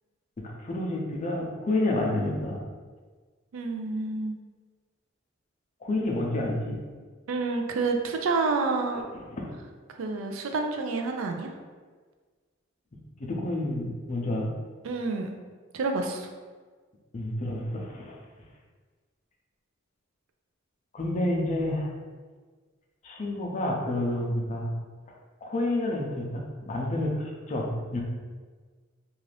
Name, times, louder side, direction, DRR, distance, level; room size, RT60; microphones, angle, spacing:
voice 1, 0.4-2.6 5.8-6.8 8.9-9.0 9.3-9.5 13.2-14.5 17.1-18.2 20.9-21.9 23.0-24.7 25.4-28.0, left 1 dB, 35° left, -1 dB, 0.5 m, -29 dB
voice 2, 3.5-4.4 7.3-9.0 10.0-11.5 14.8-15.3 15.7-16.3, right 3 dB, 80° right, 4 dB, 0.4 m, -28 dB
2.5 x 2.4 x 3.2 m, 1.5 s
head